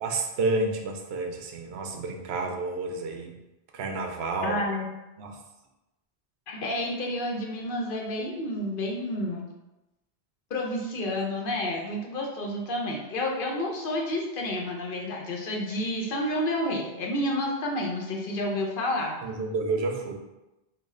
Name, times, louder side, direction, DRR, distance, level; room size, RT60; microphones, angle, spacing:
voice 1, 0.0-3.4 3.7-4.6 5.2-5.4 19.2-20.1, right 3 dB, 85° right, 3 dB, 0.8 m, -30 dB
voice 2, 4.4-4.9 6.5-9.4 10.5-19.1, left 1 dB, 60° left, 0 dB, 0.8 m, -30 dB
3.1 x 2.5 x 3.6 m, 0.98 s
omnidirectional pair, 1.0 m